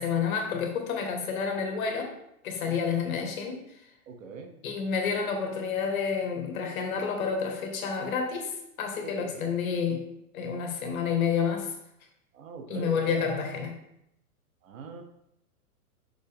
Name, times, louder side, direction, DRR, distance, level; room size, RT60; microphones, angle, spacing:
voice 1, 0.0-2.1 2.4-3.6 4.6-10.0 10.3-11.7 12.7-13.8, left 6 dB, 65° left, 3 dB, 1.7 m, -29 dB
voice 2, 4.1-4.5 9.0-9.5 12.3-13.2 14.6-15.0, right 5 dB, 60° right, 5 dB, 1.1 m, -42 dB
6.3 x 5.0 x 3.5 m, 0.79 s
hypercardioid pair, 165°, 45 cm